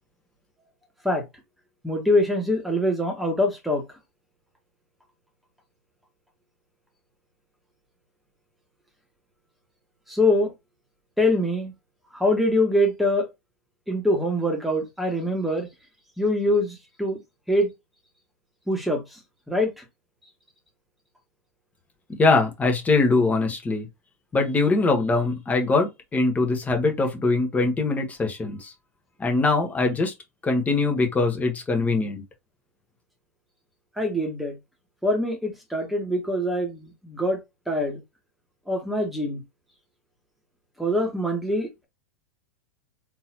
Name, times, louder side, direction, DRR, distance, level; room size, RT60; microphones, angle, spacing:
voice 1, 1.8-3.8 10.1-10.5 11.2-11.7 12.1-13.3 13.9-15.7 16.2-17.2 17.5-17.7 18.7-19.2 19.5-19.8 34.0-34.5 35.0-37.4 37.7-38.0 38.7-39.4 40.8-41.8, left 1 dB, ahead, 1.4 m, -24 dB
voice 2, 22.2-23.9 24.3-28.7 29.2-30.1 30.4-32.2, left 3 dB, 15° left, 1.2 m, -22 dB
3.8 x 2.9 x 2.9 m
hypercardioid pair, 105°, 9 cm